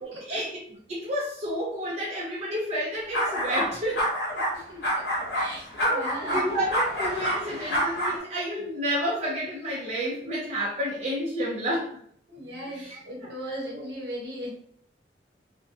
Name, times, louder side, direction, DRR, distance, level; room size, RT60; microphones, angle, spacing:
voice 1, 0.0-0.6 0.9-4.1 5.5-11.9 12.6-13.5, equal, 40° right, -6 dB, 0.5 m, -30 dB
sound 1, 3.1-3.7 4.0-4.5 4.8-8.2, equal, 65° left, 0.8 m, -27 dB
voice 2, 5.3-6.4 12.3-14.5, equal, 70° right, -2 dB, 0.9 m, -37 dB
2.5 x 2.1 x 2.6 m, 0.64 s
head